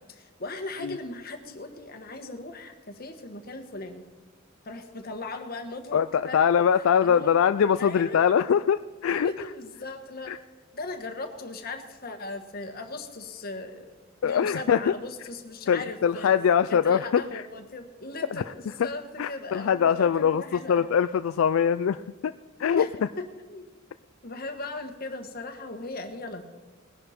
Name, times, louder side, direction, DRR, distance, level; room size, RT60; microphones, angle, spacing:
voice 1, 0.1-4.0 4.6-6.5 7.0-7.3 7.8-8.2 9.2-13.9 14.2-16.3 16.7-20.9 22.8-22.9 23.2-23.6 24.2-26.4, left 2 dB, 45° left, 6 dB, 1.5 m, -38 dB
voice 2, 5.9-9.3 10.3-10.4 14.2-14.9 15.7-17.4 18.3-18.4 19.2-22.3 22.6-22.9, left 7 dB, 75° left, 12 dB, 0.3 m, -23 dB
20.0 x 11.0 x 4.3 m, 1.4 s
head